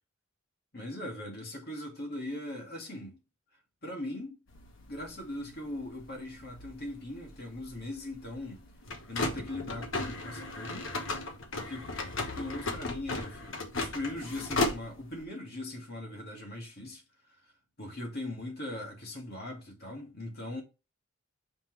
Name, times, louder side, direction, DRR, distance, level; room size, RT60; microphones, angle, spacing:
voice 1, 0.7-3.2 3.8-4.4 4.9-8.7 9.1-10.9 11.6-17.0 17.8-20.6, left 1 dB, 50° left, 2.3 m, -40 dB
sound 1, 4.5-15.2, left 2 dB, 65° left, 1.2 m, -36 dB
5.7 x 5.2 x 3.3 m
head